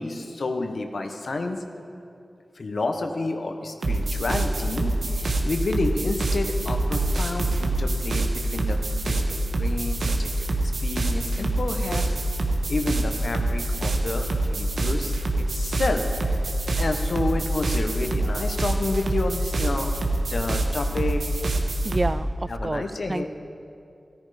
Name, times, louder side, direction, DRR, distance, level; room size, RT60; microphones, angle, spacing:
voice 1, 0.0-1.6 2.6-10.5 10.8-12.1 12.7-16.5 16.8-19.9 20.3-21.2 22.5-23.3, left 2 dB, 75° left, 5 dB, 1.1 m, -30 dB
sound 1, 3.8-22.0, right 2 dB, 90° right, 1.3 m, -25 dB
voice 2, 21.8-23.3, right 2 dB, 35° right, 16 dB, 0.4 m, -29 dB
14.0 x 13.5 x 5.0 m, 2.6 s
cardioid pair, 50°, 0 cm